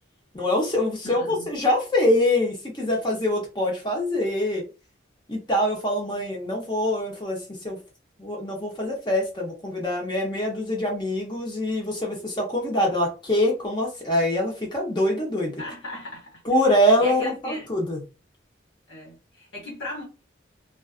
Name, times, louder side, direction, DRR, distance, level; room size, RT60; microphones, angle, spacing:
voice 1, 0.3-4.6 5.3-7.8 8.2-15.6 16.4-18.0, left 1 dB, 25° left, 0.7 m, -24 dB
voice 2, 1.0-1.5 15.6-17.7 18.9-20.0, left 1 dB, 75° left, 1.2 m, -38 dB
2.4 x 2.4 x 2.3 m
head